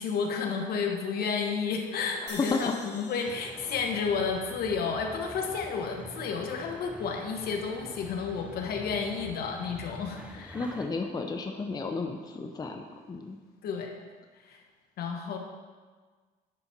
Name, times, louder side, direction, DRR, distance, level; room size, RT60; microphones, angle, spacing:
voice 1, 0.0-10.6 13.6-14.0 14.4-14.6 15.0-15.4, left 5 dB, 65° left, 3 dB, 1.3 m, -31 dB
sound 1, 2.3-5.5, left 4 dB, 85° left, 1.7 m, -48 dB
voice 2, 2.4-2.7 10.5-13.4, left 3 dB, 25° left, 4 dB, 0.6 m, -32 dB
sound 2, 3.2-10.9, right 1 dB, 5° right, 0.8 m, -46 dB
9.8 x 4.2 x 5.9 m, 1.5 s
cardioid pair, 110°, 17 cm